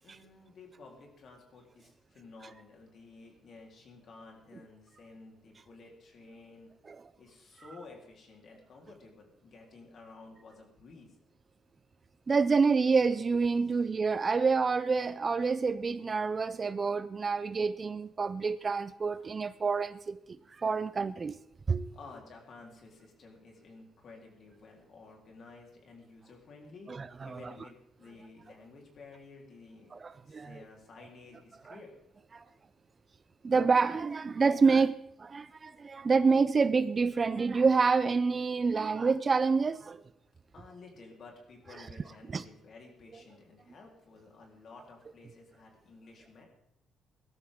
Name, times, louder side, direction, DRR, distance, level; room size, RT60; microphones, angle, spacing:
voice 1, 0.0-6.7 7.2-11.2 13.7-13.8 21.9-29.9 30.2-32.0 40.5-46.5, left 3 dB, 60° left, 3.8 m, -53 dB
voice 2, 12.3-20.2 20.6-21.4 21.7-21.9 27.2-27.4 29.9-30.6 32.3-32.4 33.4-40.0 42.3-42.4, right 4 dB, 35° right, 0.5 m, -27 dB
17.0 x 12.5 x 3.7 m
cardioid pair, 90°, 0 cm